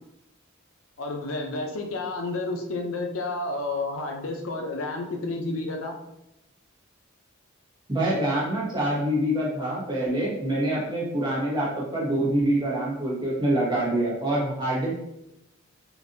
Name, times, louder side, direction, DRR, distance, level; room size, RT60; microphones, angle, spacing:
voice 1, 1.0-5.9, left 2 dB, 75° left, 2 dB, 0.6 m, -30 dB
voice 2, 7.9-15.1, right 1 dB, 25° right, -6 dB, 1.1 m, -25 dB
3.8 x 2.5 x 2.6 m, 0.86 s
head